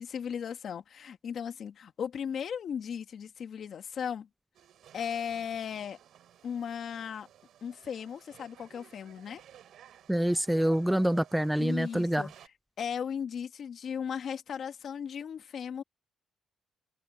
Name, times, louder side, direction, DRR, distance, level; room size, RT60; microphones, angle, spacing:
voice 1, 0.0-4.3 4.9-6.0 6.4-7.3 7.6-9.4 11.6-12.3 12.8-15.8, left 7 dB, 60° left, 1.9 m, -36 dB
sound 1, 4.5-12.5, right 10 dB, 70° right, 7.0 m, -56 dB
voice 2, 10.1-12.3, right 1 dB, 5° right, 0.5 m, -26 dB
cardioid pair, 90°, 0 cm